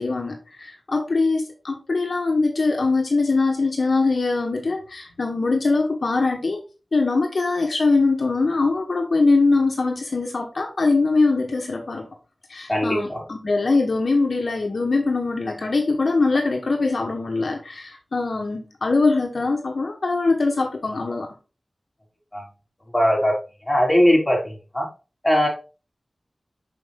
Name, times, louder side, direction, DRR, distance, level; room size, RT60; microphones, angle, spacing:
voice 1, 0.0-6.6 6.9-12.1 12.5-21.3, left 3 dB, 75° left, 2 dB, 1.1 m, -22 dB
voice 2, 12.7-13.2 22.3-22.4 22.9-23.3 23.7-24.4 24.7-24.9 25.2-25.5, equal, 20° left, -2 dB, 3.6 m, -19 dB
6.2 x 5.2 x 3.4 m, 0.33 s
wide cardioid pair, 50°, 0 cm